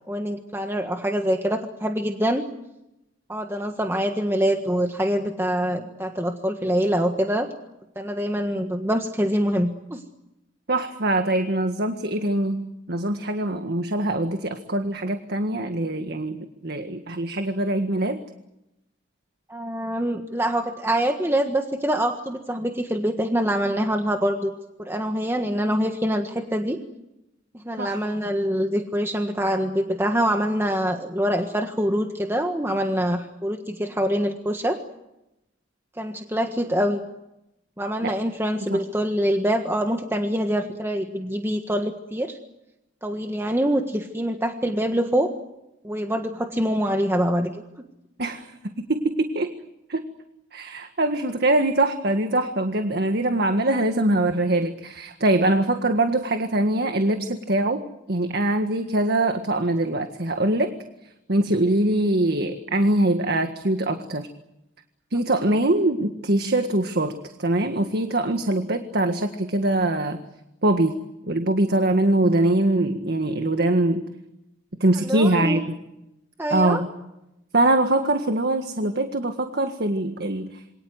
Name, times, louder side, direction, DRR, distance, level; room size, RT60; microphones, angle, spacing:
voice 1, 0.1-2.4 3.3-7.5 7.9-10.0 19.5-24.5 24.8-26.8 27.5-34.8 36.0-37.0 37.8-42.4 43.0-45.3 45.8-47.6 65.4-65.6 75.0-75.6 76.4-76.8, equal, 15° right, 4 dB, 1.5 m, -25 dB
voice 2, 10.7-18.2 27.8-28.0 38.0-38.1 38.7-38.8 48.2-49.5 49.9-50.1 50.5-57.8 58.1-60.7 61.3-64.3 65.1-70.2 70.6-70.9 71.3-74.0 74.8-75.6 76.5-76.9 77.5-80.6, right 1 dB, 55° right, 6 dB, 1.7 m, -23 dB
27.5 x 24.0 x 8.0 m, 0.90 s
head